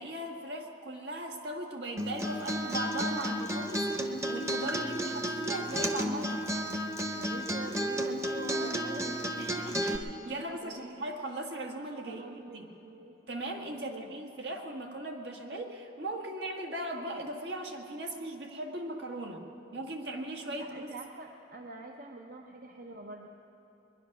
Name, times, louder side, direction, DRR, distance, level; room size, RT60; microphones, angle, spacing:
voice 1, 0.0-6.7 9.4-12.7 13.3-19.4 19.7-20.9, right 1 dB, 70° right, 2 dB, 1.7 m, -38 dB
Acoustic guitar, 2.0-10.0, equal, 15° right, 0.9 m, -32 dB
voice 2, 7.1-9.2 10.2-11.1 12.1-13.1 13.8-14.1 20.5-23.3, right 2 dB, 55° right, 2 dB, 0.8 m, -45 dB
21.0 x 11.0 x 6.0 m, 2.9 s
head